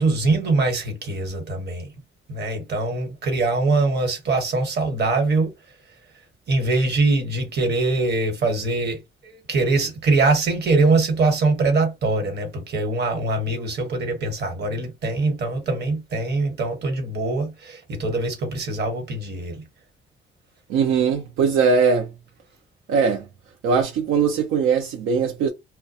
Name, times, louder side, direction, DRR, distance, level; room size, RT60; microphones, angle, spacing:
voice 1, 0.0-1.9 2.3-5.5 6.5-19.6, right 3 dB, 55° right, 1.1 m, -23 dB
voice 2, 20.7-22.1 22.9-23.2 23.6-25.5, right 5 dB, 85° right, 0.5 m, -20 dB
2.3 x 2.1 x 2.7 m
cardioid pair, 90°, 20 cm